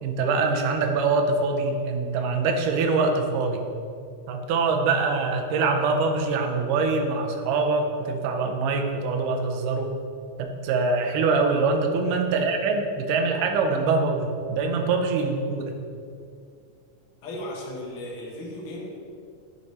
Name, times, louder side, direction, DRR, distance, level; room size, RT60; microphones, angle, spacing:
voice 1, 0.0-3.6 4.3-9.9 10.4-15.7, right 4 dB, 80° right, 3 dB, 2.2 m, -24 dB
voice 2, 17.2-18.9, left 1 dB, 60° left, -3 dB, 1.4 m, -36 dB
9.8 x 3.3 x 4.1 m, 2.4 s
omnidirectional pair, 3.8 m